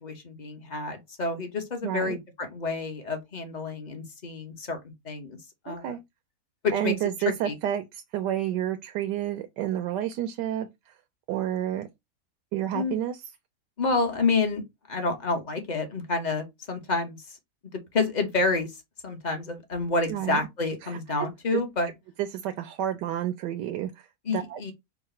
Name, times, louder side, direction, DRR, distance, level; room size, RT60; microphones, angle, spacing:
voice 1, 0.0-5.4 5.6-6.0 6.6-6.9 7.4-7.6 12.7-13.0 13.8-14.6 14.9-17.4 17.7-18.8 19.0-21.9 24.2-24.7, left 3 dB, 35° left, 0.7 m, -29 dB
voice 2, 1.8-2.1 5.7-6.0 6.7-10.7 11.3-11.9 12.5-13.2 20.1-20.4 20.8-21.0 21.5-21.6 22.2-24.1 24.3-24.6, right 11 dB, 85° right, 1.2 m, -30 dB
4.7 x 2.1 x 4.2 m
omnidirectional pair, 1.8 m